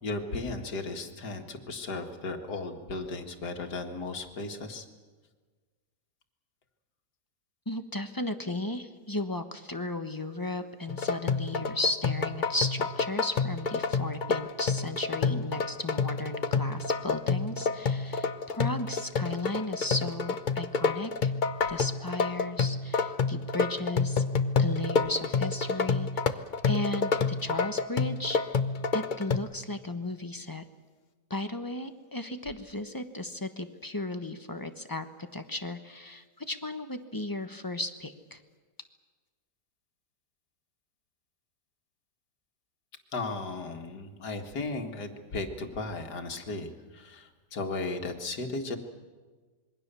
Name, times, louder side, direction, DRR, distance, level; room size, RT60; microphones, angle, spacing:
voice 1, 0.0-4.8 43.1-48.8, left 3 dB, 75° left, 4 dB, 2.4 m, -35 dB
voice 2, 7.7-21.3 21.7-24.2 24.6-26.4 26.6-28.6 28.9-30.6 31.3-38.4, left 2 dB, 15° left, 8 dB, 1.0 m, -35 dB
sound 1, 10.9-29.4, left 5 dB, 40° left, 0.7 m, -28 dB
26.5 x 22.0 x 6.9 m, 1.4 s
omnidirectional pair, 1.8 m